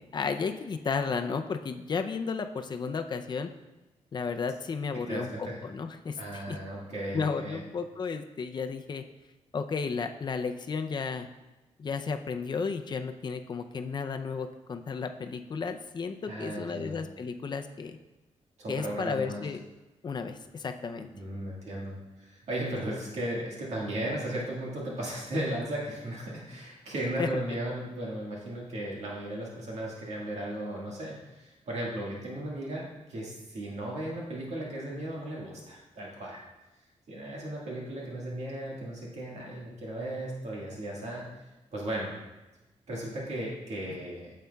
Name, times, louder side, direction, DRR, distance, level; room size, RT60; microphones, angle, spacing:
voice 1, 0.0-3.5 4.1-6.6 7.1-9.0 9.5-11.3 11.8-18.0 18.7-19.6 20.0-21.1 27.2-27.3, left 5 dB, 40° left, 7 dB, 0.4 m, -33 dB
voice 2, 4.9-5.6 6.2-7.6 16.3-17.0 18.6-19.5 21.1-36.4 37.1-41.3 41.7-42.1 42.9-44.3, right 1 dB, 70° right, -4 dB, 1.6 m, -36 dB
9.1 x 7.4 x 2.3 m, 1.1 s
wide cardioid pair, 150°, 12 cm